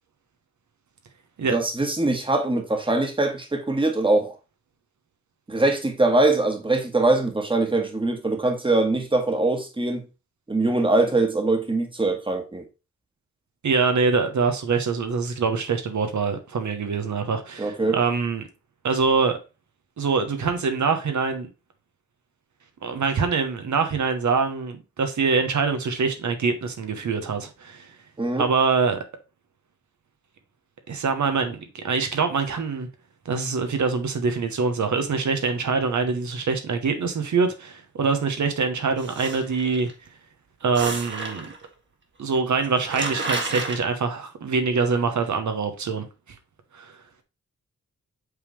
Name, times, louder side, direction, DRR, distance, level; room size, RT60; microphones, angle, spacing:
voice 1, 1.5-4.3 5.5-10.0 10.5-12.6 17.6-18.0 28.2-28.4, right 2 dB, 15° right, 1.4 m, -22 dB
voice 2, 13.6-18.4 18.8-19.4 20.0-21.5 22.8-27.9 28.4-29.0 30.9-32.9 33.2-39.9 40.6-41.5 42.2-46.0 46.7-46.9, right 4 dB, 75° right, 1.1 m, -24 dB
sound 1, 39.0-39.9 40.7-41.7 42.4-42.5 42.6-43.8, right 2 dB, 40° right, 1.6 m, -31 dB
8.0 x 3.6 x 3.2 m
wide cardioid pair, 120°, 29 cm